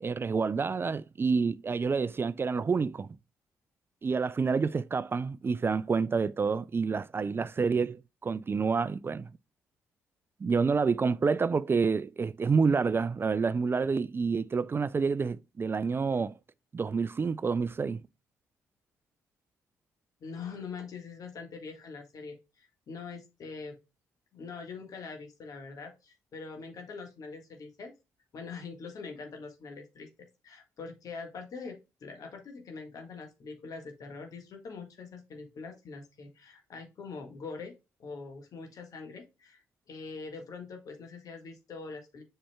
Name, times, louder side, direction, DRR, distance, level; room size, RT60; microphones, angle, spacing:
voice 1, 0.0-3.1 4.0-9.3 10.4-16.3 16.7-18.0, right 5 dB, 35° right, 0.4 m, -28 dB
voice 2, 20.2-23.8 24.3-27.9 28.3-30.1 30.4-37.7 38.0-42.2, left 4 dB, 60° left, 1.7 m, -43 dB
7.5 x 5.6 x 2.3 m
hypercardioid pair, 50°, 7 cm